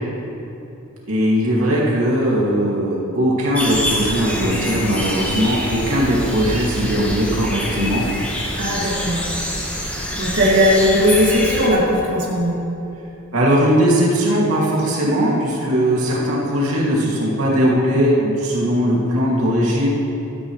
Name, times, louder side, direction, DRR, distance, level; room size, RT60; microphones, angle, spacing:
voice 1, 1.1-8.0 13.3-19.9, equal, 75° right, -5 dB, 2.6 m, -19 dB
sound 1, 3.5-11.7, equal, 5° left, 1.8 m, -26 dB
voice 2, 8.5-9.2 10.2-12.6, equal, 55° right, -6 dB, 2.4 m, -17 dB
16.5 x 12.5 x 3.3 m, 2.8 s
head